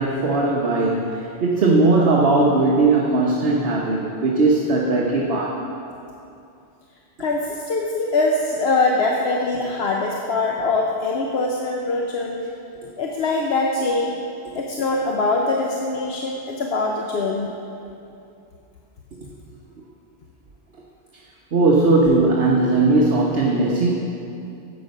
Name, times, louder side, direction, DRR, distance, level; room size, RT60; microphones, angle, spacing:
voice 1, 0.0-5.6 21.5-23.9, right 3 dB, 55° right, -2 dB, 1.2 m, -18 dB
voice 2, 7.2-12.5 13.0-14.2 14.5-17.5, left 3 dB, 60° left, 0 dB, 1.0 m, -23 dB
12.0 x 8.1 x 5.3 m, 2.6 s
omnidirectional pair, 1.3 m